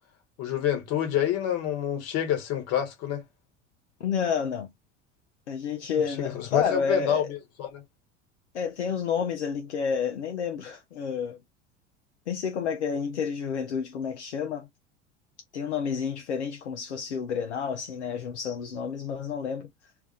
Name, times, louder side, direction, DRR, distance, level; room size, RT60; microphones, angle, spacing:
voice 1, 0.4-3.2 6.2-7.8, left 10 dB, 45° left, 1.3 m, -27 dB
voice 2, 4.0-4.7 5.5-7.3 8.5-11.4 12.3-14.7 15.5-19.9, left 6 dB, 70° left, 0.6 m, -30 dB
3.4 x 2.5 x 3.8 m
figure-of-eight pair, 75°, 35 cm